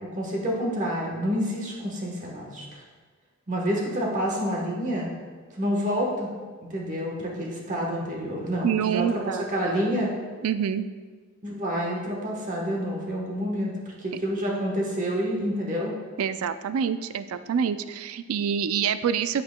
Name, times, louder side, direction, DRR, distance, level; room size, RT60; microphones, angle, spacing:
voice 1, 0.0-2.8 3.5-5.1 5.5-6.3 6.7-9.2 9.5-10.1 11.4-15.9, equal, 35° right, -2 dB, 1.2 m, -28 dB
voice 2, 8.6-9.4 10.4-10.9 16.2-19.4, right 7 dB, 85° right, 12 dB, 0.4 m, -26 dB
8.6 x 8.5 x 2.2 m, 1.5 s
head